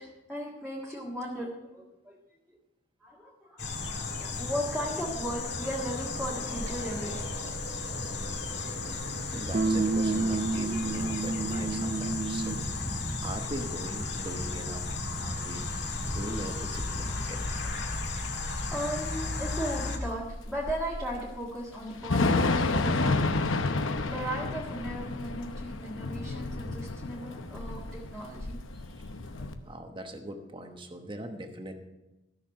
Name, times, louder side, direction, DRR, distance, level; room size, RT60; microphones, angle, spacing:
voice 1, 0.0-2.2 3.0-3.6 4.0-7.5 16.0-16.1 17.1-17.2 17.6-17.7 18.1-23.4 24.1-28.6 29.4-29.5, equal, ahead, -6 dB, 1.6 m, -37 dB
sound 1, 3.6-20.0, left 3 dB, 60° left, 1.8 m, -34 dB
voice 2, 9.2-17.4 28.7-29.1 29.6-31.7, right 1 dB, 25° right, 5 dB, 1.0 m, -41 dB
sound 2, 9.5-12.7, right 3 dB, 40° right, 0.4 m, -29 dB
Thunder / Rain, 16.1-29.5, left 3 dB, 80° left, 0.9 m, -31 dB
14.0 x 6.5 x 6.5 m, 0.99 s
head